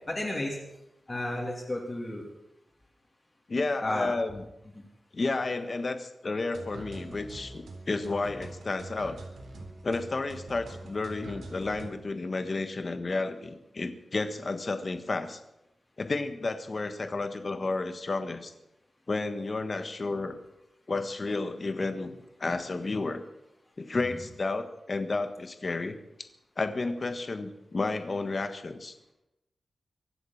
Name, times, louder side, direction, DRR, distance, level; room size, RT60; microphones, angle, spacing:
voice 1, 0.1-0.6 1.1-2.2 3.8-4.1 4.7-4.8 24.1-24.2, left 1 dB, 25° left, -2 dB, 3.0 m, -33 dB
voice 2, 3.5-4.4 5.1-9.2 9.8-15.4 16.0-18.5 19.1-20.4 20.9-22.1 22.4-23.2 23.8-26.0 26.6-28.9, left 3 dB, 40° left, 8 dB, 1.6 m, -31 dB
sound 1, 6.5-11.9, right 2 dB, 85° right, 4.0 m, -44 dB
24.0 x 8.0 x 7.3 m, 0.89 s
wide cardioid pair, 120°, 0 cm